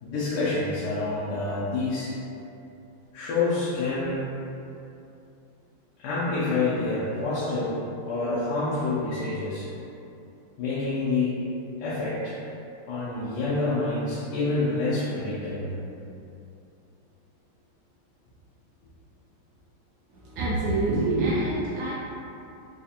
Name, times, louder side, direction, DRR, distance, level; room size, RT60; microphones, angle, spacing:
voice 1, 0.0-2.1 3.1-4.3 6.0-9.7 10.6-11.3 11.8-12.4 12.9-15.8, left 3 dB, 85° left, -9 dB, 1.6 m, -27 dB
voice 2, 20.1-21.9, right 2 dB, 80° right, -7 dB, 0.9 m, -26 dB
4.3 x 2.4 x 2.7 m, 2.7 s
omnidirectional pair, 2.4 m